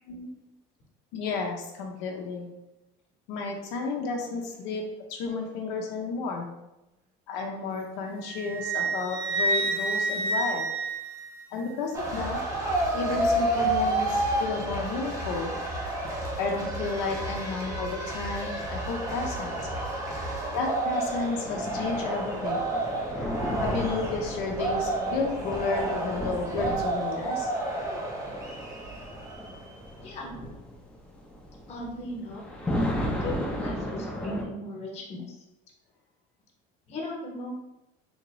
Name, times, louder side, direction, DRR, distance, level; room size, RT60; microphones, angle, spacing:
voice 1, 1.1-2.5 3.3-6.5 7.3-10.7 11.5-12.4 12.9-15.5 16.4-19.5 20.5-22.7 23.6-27.5, left 4 dB, 85° left, 0 dB, 0.6 m, -32 dB
Wind instrument woodwind instrument, 8.3-11.7, right 2 dB, 70° right, 0.6 m, -29 dB
sound 1, 11.9-29.7, right 2 dB, 20° right, 0.7 m, -30 dB
sound 2, 21.1-34.4, equal, 5° left, 0.4 m, -35 dB
voice 2, 30.0-30.3 31.7-32.4 33.2-35.4 36.9-37.5, left 1 dB, 35° left, 0 dB, 0.9 m, -37 dB
3.5 x 2.6 x 3.0 m, 0.94 s
cardioid pair, 150°, 18 cm